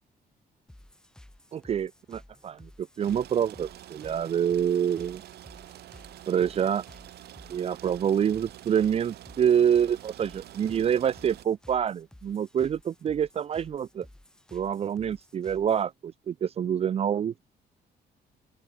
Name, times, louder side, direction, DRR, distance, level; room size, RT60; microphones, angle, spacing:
sound 1, 0.7-15.9, left 1 dB, 5° left, 6.9 m, -54 dB
voice 1, 1.5-5.2 6.3-6.8 7.5-14.1 14.5-17.3, right 8 dB, 35° right, 0.7 m, -27 dB
sound 2, 3.0-11.5, right 13 dB, 75° right, 3.6 m, -47 dB
open air
cardioid pair, 170°, 17 cm